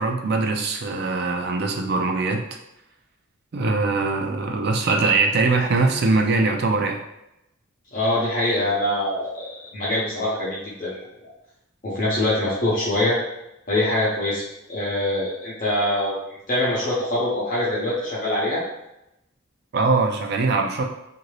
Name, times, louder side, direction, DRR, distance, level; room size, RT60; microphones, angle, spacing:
voice 1, 0.0-2.5 3.5-7.0 19.7-20.8, right 3 dB, 50° right, 3 dB, 0.4 m, -22 dB
voice 2, 7.9-11.0 11.8-13.2 13.7-14.4 14.7-16.1 16.5-18.6, left 1 dB, 40° left, -8 dB, 0.9 m, -24 dB
2.8 x 2.6 x 3.1 m, 0.87 s
head